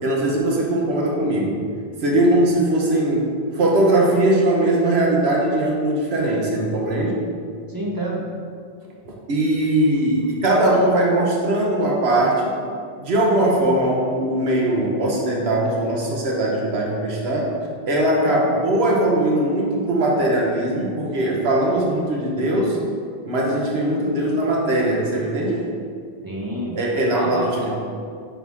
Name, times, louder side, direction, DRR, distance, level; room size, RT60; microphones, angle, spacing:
voice 1, 0.0-1.6 2.0-3.3 3.5-7.2 9.0-12.6 13.0-17.5 17.9-22.8 23.2-25.6 26.7-27.8, right 1 dB, 80° right, -2 dB, 1.2 m, -20 dB
voice 2, 7.7-8.3 26.2-26.8 27.1-27.7, right 1 dB, 25° right, -3 dB, 0.7 m, -27 dB
5.6 x 3.9 x 4.7 m, 2.2 s
omnidirectional pair, 1.1 m